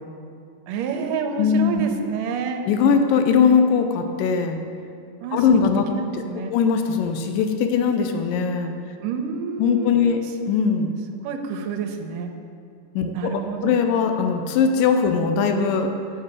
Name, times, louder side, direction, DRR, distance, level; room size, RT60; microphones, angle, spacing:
voice 1, 0.7-2.6 5.2-5.6 5.9-6.5 9.0-9.9 11.2-12.3 13.1-13.8, right 6 dB, 85° right, 5 dB, 2.2 m, -28 dB
voice 2, 1.4-1.8 2.7-4.6 5.3-5.8 6.5-8.7 9.6-10.2 10.5-10.9 13.0-15.9, left 6 dB, 90° left, 6 dB, 2.4 m, -20 dB
9.1 x 7.1 x 4.8 m, 2.4 s
omnidirectional pair, 3.8 m